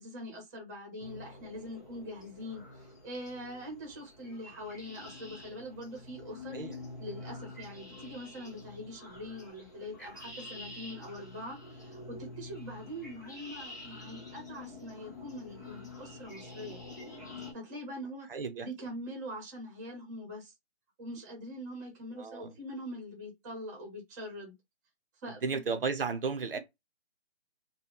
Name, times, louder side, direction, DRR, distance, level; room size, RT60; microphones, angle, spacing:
voice 1, 0.0-6.6 7.0-16.8 17.5-18.3 18.6-20.5 21.0-24.5 25.2-25.6, equal, 15° right, 0.9 m, -43 dB
sound 1, 1.0-17.5, left 2 dB, 15° left, 0.5 m, -47 dB
voice 2, 18.3-18.7 22.2-22.5 25.3-26.6, right 5 dB, 55° right, 0.7 m, -34 dB
2.9 x 2.2 x 3.5 m
hypercardioid pair, 160°, 33 cm